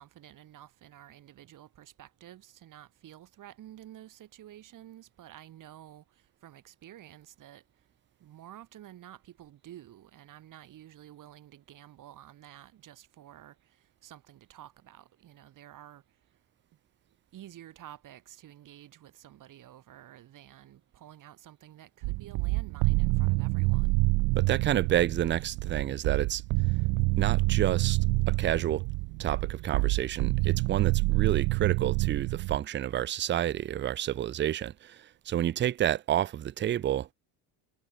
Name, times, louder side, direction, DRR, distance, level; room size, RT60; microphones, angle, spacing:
voice 1, 0.0-6.0 6.4-7.6 8.2-13.6 14.0-16.0 17.3-23.9, right 12 dB, 55° right, 7.8 m, -51 dB
sound 1, 22.0-32.6, right 27 dB, 70° right, 0.6 m, -27 dB
voice 2, 24.4-26.4 27.2-28.0 28.3-28.9 29.2-37.1, right 11 dB, 30° right, 0.5 m, -29 dB
cardioid pair, 115°, 38 cm